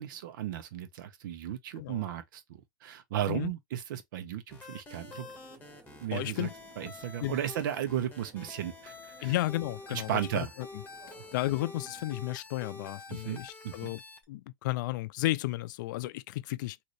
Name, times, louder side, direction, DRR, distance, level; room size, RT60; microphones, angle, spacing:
voice 1, 0.0-2.4 2.8-5.3 6.0-6.5 6.8-8.9 9.2-9.3 9.9-10.5 13.1-13.9, right 11 dB, 70° right, 1.0 m, -35 dB
sound 1, 4.5-14.2, left 3 dB, 15° left, 1.5 m, -47 dB
sound 2, 5.0-12.1, right 4 dB, 25° right, 1.7 m, -59 dB
voice 2, 6.1-6.5 6.8-6.9 7.2-7.4 9.2-10.7 11.3-14.0 14.3-16.8, left 17 dB, 65° left, 0.4 m, -33 dB
3.9 x 2.8 x 3.3 m
hypercardioid pair, 125°, 11 cm